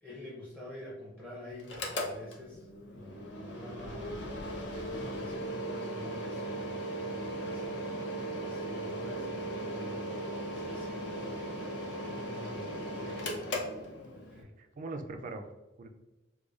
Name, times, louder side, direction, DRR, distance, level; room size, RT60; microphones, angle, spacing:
voice 1, 0.0-11.3 12.0-13.7 14.1-14.5, left 1 dB, 5° left, -7 dB, 0.6 m, -49 dB
Mechanical fan, 1.6-14.4, right 1 dB, 70° left, 0.6 m, -37 dB
voice 2, 12.4-13.3 14.3-15.5 15.8-15.9, right 2 dB, 45° right, 5 dB, 0.4 m, -43 dB
4.8 x 2.3 x 2.4 m, 1.1 s
head